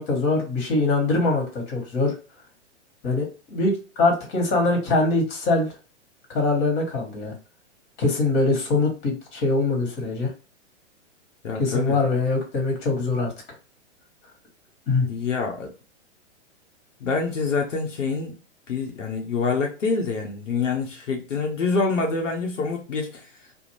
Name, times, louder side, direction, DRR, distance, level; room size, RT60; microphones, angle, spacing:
voice 1, 0.0-2.1 3.0-5.7 6.3-7.3 8.0-10.3 11.6-13.3 14.9-15.1, left 3 dB, 40° left, 1.3 m, -23 dB
voice 2, 11.4-12.0 15.1-15.7 17.0-18.4 18.7-23.3, left 4 dB, 85° left, 0.7 m, -26 dB
2.5 x 2.0 x 3.0 m
hypercardioid pair, 115°, 36 cm